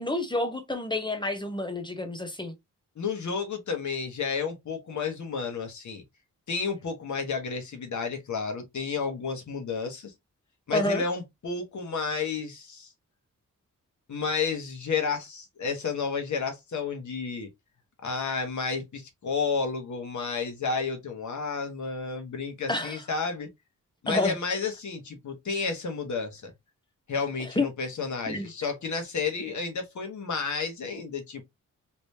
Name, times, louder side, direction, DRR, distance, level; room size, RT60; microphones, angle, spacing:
voice 1, 0.0-2.5 10.7-11.0 22.7-23.0 24.1-24.4 27.6-27.7 28.3-28.5, left 2 dB, 15° left, 0.9 m, -28 dB
voice 2, 3.0-6.0 6.5-10.1 10.7-12.9 14.1-17.5 18.0-23.5 24.0-26.5 27.1-31.4, left 5 dB, 65° left, 1.3 m, -31 dB
3.3 x 3.0 x 2.8 m
wide cardioid pair, 100°, 32 cm